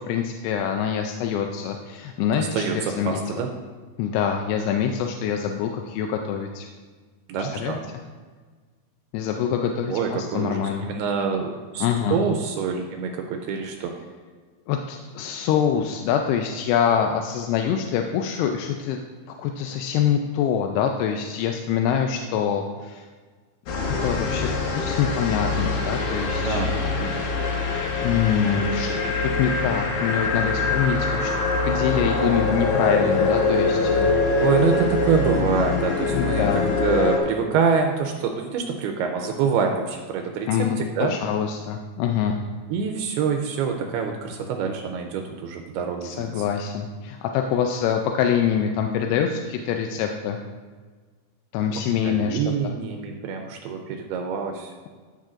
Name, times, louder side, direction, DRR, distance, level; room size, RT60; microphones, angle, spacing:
voice 1, 0.0-3.2 4.0-6.7 7.4-7.8 9.1-10.9 11.8-12.2 14.7-19.0 19.3-23.1 23.7-26.6 28.0-31.3 31.6-34.4 36.1-36.7 40.5-42.4 46.0-50.4 51.5-52.7, left 8 dB, 85° left, 3 dB, 2.6 m, -25 dB
voice 2, 2.4-3.5 7.3-7.8 9.9-13.9 26.4-27.3 34.4-40.5 40.8-41.1 42.7-46.5 52.0-54.7, right 6 dB, 80° right, 3 dB, 2.6 m, -26 dB
sound 1, 23.7-37.2, left 3 dB, 65° left, 2.6 m, -24 dB
15.0 x 6.2 x 2.6 m, 1.5 s
omnidirectional pair, 4.6 m